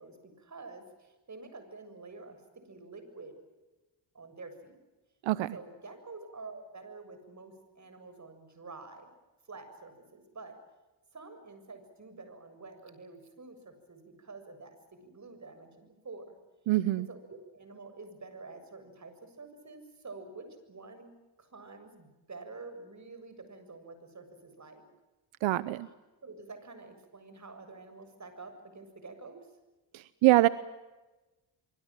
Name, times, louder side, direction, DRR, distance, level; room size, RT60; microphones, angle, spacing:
voice 1, 0.0-2.4 2.7-3.3 4.1-4.8 5.4-9.1 9.5-10.6 11.1-14.8 15.0-16.3 16.9-17.2 17.5-21.1 21.4-24.8 26.2-29.5, right 3 dB, 35° right, 9 dB, 7.3 m, -48 dB
voice 2, 5.2-5.6 16.7-17.1 25.4-25.9 29.9-30.5, right 17 dB, 90° right, 16 dB, 0.9 m, -24 dB
25.5 x 25.0 x 7.5 m, 1.1 s
cardioid pair, 80°, 46 cm